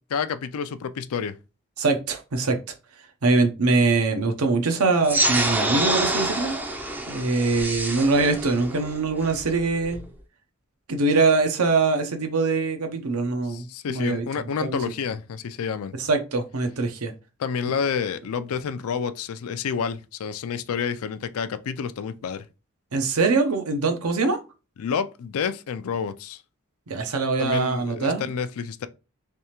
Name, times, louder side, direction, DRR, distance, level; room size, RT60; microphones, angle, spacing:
voice 1, 0.1-1.4 7.2-7.3 13.5-15.9 17.4-22.5 24.8-26.4 27.4-28.9, left 6 dB, 70° left, 0.4 m, -29 dB
voice 2, 1.8-2.6 3.2-6.6 7.1-10.0 10.9-14.8 16.0-17.1 22.9-24.4 26.9-28.3, right 3 dB, 80° right, 0.8 m, -23 dB
sound 1, 5.0-10.1, right 1 dB, 10° right, 0.4 m, -27 dB
3.4 x 3.2 x 3.0 m
head